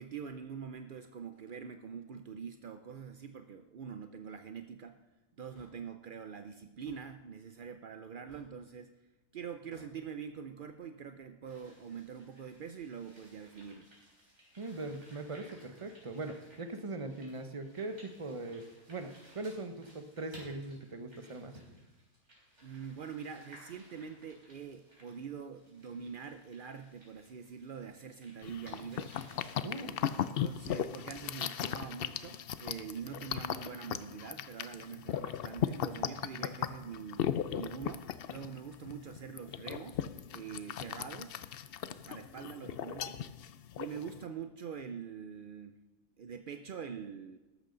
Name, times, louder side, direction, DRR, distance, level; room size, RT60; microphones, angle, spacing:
voice 1, 0.0-5.0 5.4-8.9 9.3-13.9 22.6-29.2 30.2-40.1 40.3-41.4 41.9-43.3 43.8-45.8 46.2-47.4, right 7 dB, 65° right, 8 dB, 0.5 m, -44 dB
Hammer / Wood, 5.5-5.7 6.9-7.0 8.3-8.6 9.7-9.9, left 1 dB, 35° left, 5.8 m, -59 dB
sound 1, 11.5-29.5, equal, 45° right, 4.5 m, -59 dB
voice 2, 14.6-21.5 29.6-30.0, right 2 dB, 25° right, 8 dB, 0.8 m, -41 dB
sound 2, 28.4-44.2, left 9 dB, 80° left, 0.5 m, -37 dB
14.0 x 12.5 x 3.9 m, 1.1 s
omnidirectional pair, 1.6 m